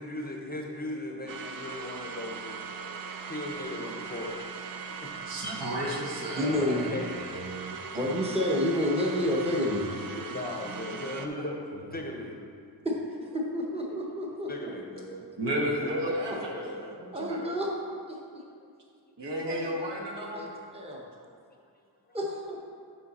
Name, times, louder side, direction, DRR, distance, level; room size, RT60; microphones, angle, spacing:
voice 1, 0.0-2.9 3.3-5.1 6.3-7.4 10.1-12.3 14.5-15.9 18.3-18.4 20.4-20.5 21.3-21.4, left 1 dB, 20° left, 0 dB, 0.6 m, -38 dB
sound 1, 1.3-11.3, right 6 dB, 55° right, 0.5 m, -40 dB
voice 2, 1.4-1.8 2.8-3.1 5.2-8.0 10.0-10.9 11.7-11.8 15.2-17.5 19.2-20.5, equal, 70° right, -2 dB, 1.3 m, -34 dB
voice 3, 6.3-6.8 7.9-9.9 12.8-13.0 13.2-14.5 16.3-16.4 17.1-17.7 18.1-18.2 19.5-19.7 20.3-21.0 22.1-22.6, left 1 dB, 15° right, -2 dB, 0.9 m, -29 dB
7.6 x 5.6 x 4.1 m, 2.2 s
wide cardioid pair, 155°, 42 cm